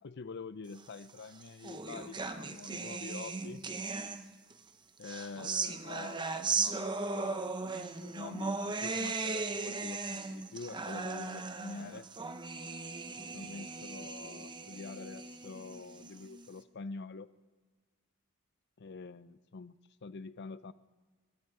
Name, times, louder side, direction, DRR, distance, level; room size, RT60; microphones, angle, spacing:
voice 1, 0.0-3.7 5.0-12.1 13.2-17.3 18.8-20.7, left 4 dB, 50° left, 15 dB, 0.5 m, -46 dB
sound 1, 1.1-4.5 5.0-16.5, right 4 dB, 20° right, 0.7 m, -38 dB
23.5 x 12.0 x 4.8 m, 1.4 s
head